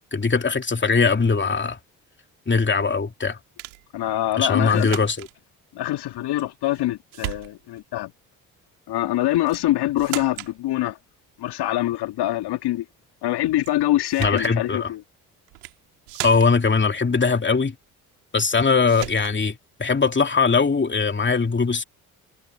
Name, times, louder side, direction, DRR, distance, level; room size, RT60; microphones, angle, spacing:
voice 1, 0.1-1.8 2.5-3.4 4.4-5.3 14.2-14.9 16.2-17.8 18.3-21.8, left 4 dB, 25° left, 2.8 m, -21 dB
sound 1, 3.6-3.9 4.7-5.3 6.4-6.8 7.1-7.8 9.5-9.7 10.0-10.6 13.6-13.7 14.0-14.6 15.5-15.8 16.1-16.7 18.4-18.6 18.9-19.4, right 24 dB, 80° right, 3.0 m, -35 dB
voice 2, 3.9-4.9 5.7-8.1 8.9-11.0 11.4-12.9 13.2-15.0, left 15 dB, 60° left, 2.0 m, -24 dB
hypercardioid pair, 50°, 44 cm